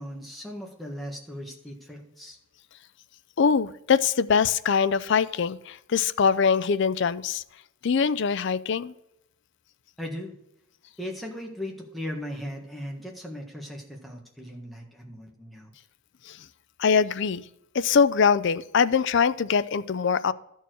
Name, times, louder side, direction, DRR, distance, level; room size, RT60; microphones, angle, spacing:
voice 1, 0.0-2.4 10.0-10.3 11.0-15.7, equal, ahead, 0 dB, 1.5 m, -38 dB
voice 2, 3.4-7.4 7.8-8.9 16.2-16.4 16.8-17.4 17.7-20.3, left 6 dB, 55° left, 16 dB, 0.4 m, -23 dB
12.5 x 4.6 x 6.2 m, 0.80 s
head